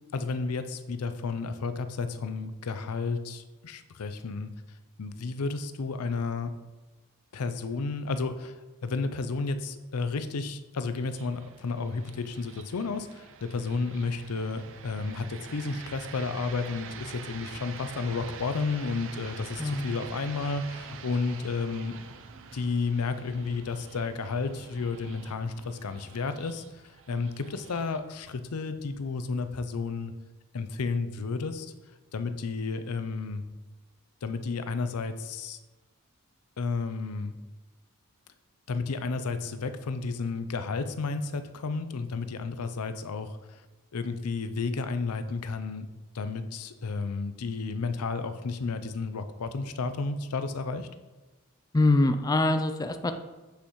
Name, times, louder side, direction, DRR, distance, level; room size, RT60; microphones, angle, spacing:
voice 1, 0.1-4.5 5.0-6.5 7.3-8.6 8.8-22.0 22.5-26.6 27.1-30.1 30.5-31.7 32.1-33.4 34.2-35.6 36.6-37.4 38.7-43.6 43.9-45.9 46.1-50.9, left 4 dB, 85° left, 10 dB, 0.5 m, -32 dB
sound 1, 10.9-29.9, right 5 dB, 60° right, 0.6 m, -46 dB
voice 2, 19.6-19.9 51.7-53.1, left 2 dB, 15° left, 8 dB, 0.4 m, -24 dB
7.6 x 6.8 x 3.1 m, 1.2 s
head